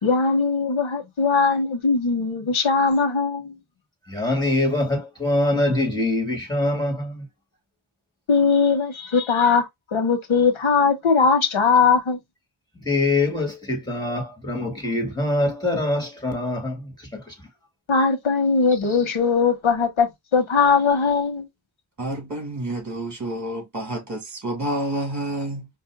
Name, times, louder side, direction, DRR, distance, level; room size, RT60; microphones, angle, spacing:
voice 1, 0.0-3.5 8.3-12.2 17.9-21.5, left 5 dB, 85° left, 1.3 m, -20 dB
voice 2, 4.1-7.3 12.7-17.3, left 2 dB, 10° left, 2.3 m, -24 dB
voice 3, 22.0-25.7, right 1 dB, 35° right, 2.1 m, -29 dB
5.3 x 2.7 x 2.3 m
wide cardioid pair, 90°, 47 cm